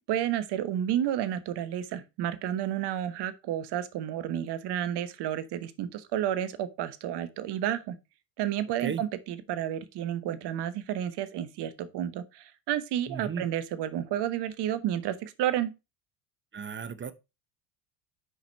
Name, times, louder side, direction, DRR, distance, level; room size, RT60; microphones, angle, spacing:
voice 1, 0.1-8.0 8.4-15.7, right 11 dB, 55° right, 1.2 m, -31 dB
voice 2, 13.1-13.5 16.5-17.1, right 6 dB, 25° right, 0.9 m, -35 dB
6.4 x 5.1 x 5.3 m
hypercardioid pair, 70°, 48 cm